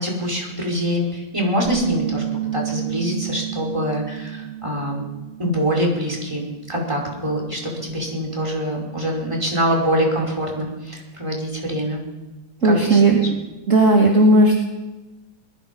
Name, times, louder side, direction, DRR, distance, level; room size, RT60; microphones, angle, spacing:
voice 1, 0.0-2.2 2.5-5.0 5.4-12.0 12.6-13.3, equal, 15° right, 0 dB, 5.3 m, -24 dB
Bass guitar, 1.7-6.0 6.3-7.9, right 10 dB, 70° left, 7.0 m, -31 dB
voice 2, 12.6-13.2 13.7-14.6, right 2 dB, 40° right, -1 dB, 2.9 m, -14 dB
22.5 x 21.5 x 5.5 m, 1.1 s
omnidirectional pair, 2.1 m